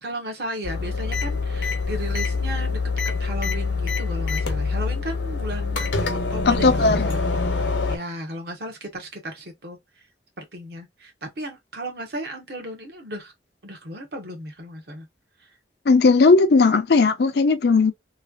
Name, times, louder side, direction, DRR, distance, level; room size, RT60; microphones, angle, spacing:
voice 1, 0.0-2.8 3.2-7.2 7.9-9.8 10.4-13.3 13.6-15.1 15.4-15.5, right 1 dB, 60° right, 1.1 m, -35 dB
sound 1, 0.6-8.0, left 4 dB, 80° left, 0.9 m, -25 dB
voice 2, 6.5-7.1 15.9-17.9, left 4 dB, 60° left, 0.5 m, -17 dB
3.1 x 2.3 x 2.4 m
head